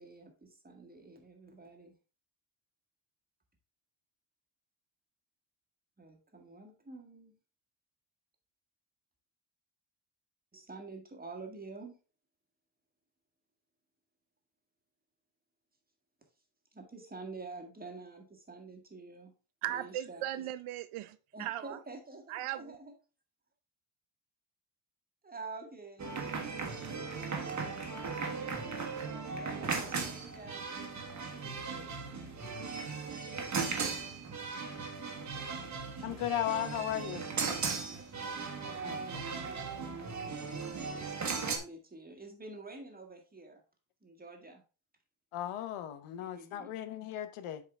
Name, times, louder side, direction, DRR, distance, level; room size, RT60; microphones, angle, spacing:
voice 1, 0.0-1.9 6.0-7.4 10.5-11.9 16.7-19.3 19.6-20.2 21.3-22.9 25.2-27.7 28.6-31.7 37.7-38.4 41.1-43.6 44.0-44.6 46.2-46.7, right 3 dB, 20° right, 1.7 m, -49 dB
voice 2, 19.6-21.8 22.3-22.8, right 12 dB, 80° right, 0.7 m, -38 dB
sound 1, 26.0-41.6, right 5 dB, 35° right, 1.4 m, -37 dB
voice 3, 36.0-37.3 38.8-39.3 45.3-47.6, left 11 dB, 90° left, 1.0 m, -36 dB
7.6 x 4.7 x 3.5 m
cardioid pair, 125°, 50 cm